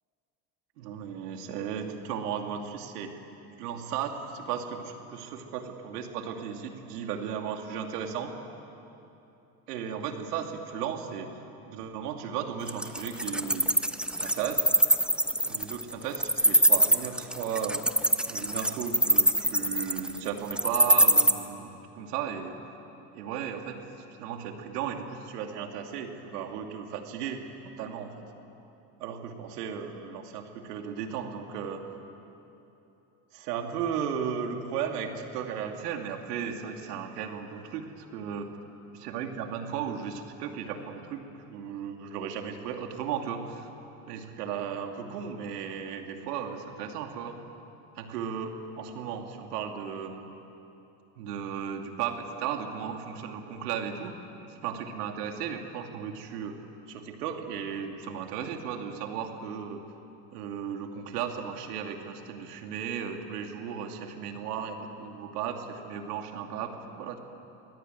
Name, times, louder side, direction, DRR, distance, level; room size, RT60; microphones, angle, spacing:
voice 1, 0.8-3.2 3.6-8.3 9.7-13.7 14.2-14.7 15.4-17.9 18.3-22.6 23.1-23.8 24.2-27.5 27.8-28.2 29.0-31.8 33.3-38.5 38.9-43.7 44.1-47.4 48.0-50.3 51.2-54.2 54.5-56.6 56.9-59.9 60.3-67.2, right 7 dB, 80° right, 4 dB, 2.7 m, -35 dB
Wild animals, 12.7-21.3, right 1 dB, ahead, 1.4 m, -22 dB
23.5 x 21.0 x 9.3 m, 2.9 s
hypercardioid pair, 80°, 47 cm